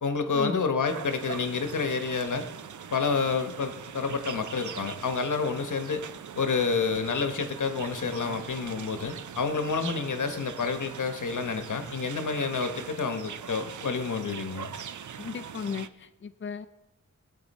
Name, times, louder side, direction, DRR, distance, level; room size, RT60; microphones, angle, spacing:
voice 1, 0.0-2.5 2.9-6.0 6.4-14.7, left 5 dB, 85° left, 7 dB, 1.2 m, -29 dB
sound 1, 0.8-15.9, right 8 dB, 80° right, 0.6 m, -41 dB
voice 2, 15.2-16.7, left 6 dB, 40° left, 8 dB, 0.5 m, -35 dB
20.5 x 8.4 x 4.2 m, 1.0 s
wide cardioid pair, 100°, 30 cm